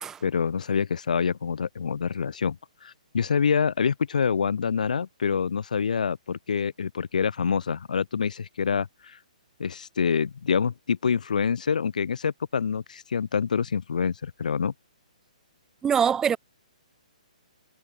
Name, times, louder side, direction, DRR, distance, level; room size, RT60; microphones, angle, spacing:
voice 1, 0.2-2.6 2.8-9.2 9.6-14.7, left 6 dB, 75° left, 0.7 m, -26 dB
voice 2, 15.8-16.4, right 7 dB, 10° right, 0.3 m, -23 dB
hypercardioid pair, 140°, 4 cm